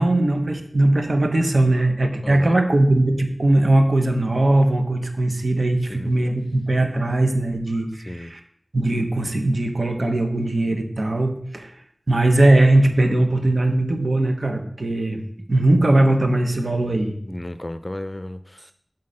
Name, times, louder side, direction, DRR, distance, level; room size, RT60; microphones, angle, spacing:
voice 1, 0.0-8.4 8.7-11.7 12.1-15.2 15.5-17.2, right 1 dB, 80° right, 5 dB, 1.0 m, -19 dB
voice 2, 2.2-2.6 5.9-6.1 8.1-8.3 17.3-18.7, left 1 dB, 35° left, 11 dB, 0.4 m, -33 dB
8.6 x 4.0 x 6.5 m, 0.67 s
wide cardioid pair, 40°, 0 cm